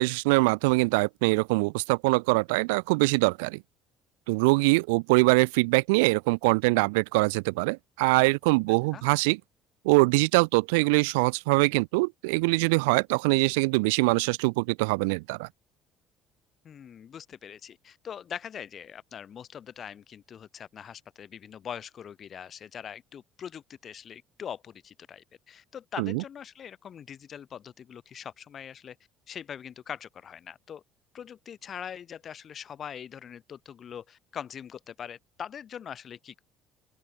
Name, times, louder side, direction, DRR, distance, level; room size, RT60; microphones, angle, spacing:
voice 1, 0.0-3.6 4.3-9.4 9.8-15.5 26.0-26.2, right 28 dB, 70° right, 0.5 m, -23 dB
voice 2, 16.6-29.0 29.3-30.8 31.1-36.4, left 8 dB, 45° left, 5.3 m, -42 dB
open air
figure-of-eight pair, 55°, 0 cm